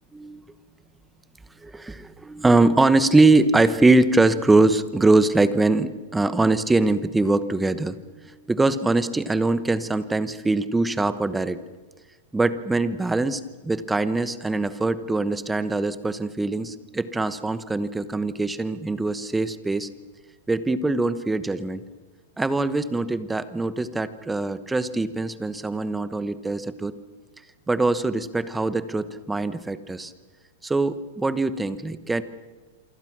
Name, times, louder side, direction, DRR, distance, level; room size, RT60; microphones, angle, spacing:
voice 1, 1.6-8.0 8.2-11.6 12.3-19.9 20.5-21.8 22.4-26.9 27.7-30.1 30.6-32.2, right 2 dB, 5° right, 13 dB, 1.0 m, -22 dB
28.0 x 25.0 x 6.2 m, 1.3 s
supercardioid pair, 155°, 0 cm